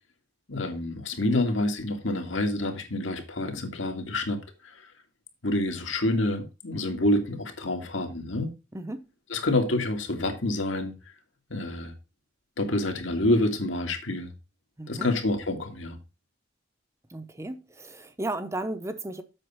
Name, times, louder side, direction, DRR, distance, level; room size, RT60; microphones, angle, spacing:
voice 1, 0.5-4.8 5.4-8.5 9.3-10.9 11.5-11.9 12.6-14.3 14.9-16.0, left 1 dB, 80° left, 2.1 m, -27 dB
voice 2, 8.7-9.1 14.8-15.1 17.1-19.2, right 2 dB, 15° right, 0.7 m, -34 dB
7.8 x 6.0 x 5.6 m
head